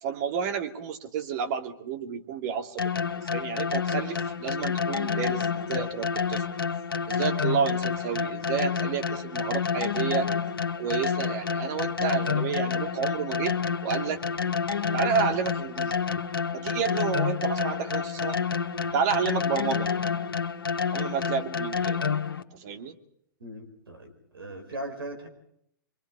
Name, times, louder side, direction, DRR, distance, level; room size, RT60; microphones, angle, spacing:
voice 1, 0.0-6.5 7.1-10.3 10.8-14.2 14.9-16.0 16.5-18.4 18.9-19.9 20.9-22.0 22.5-23.0, right 7 dB, 50° right, 5 dB, 2.6 m, -30 dB
sound 1, 2.8-22.4, left 6 dB, 90° left, 1.4 m, -29 dB
voice 2, 23.4-25.3, right 1 dB, 85° right, 6 dB, 5.2 m, -39 dB
25.5 x 23.5 x 5.0 m, 0.72 s
hypercardioid pair, 120°, 12 cm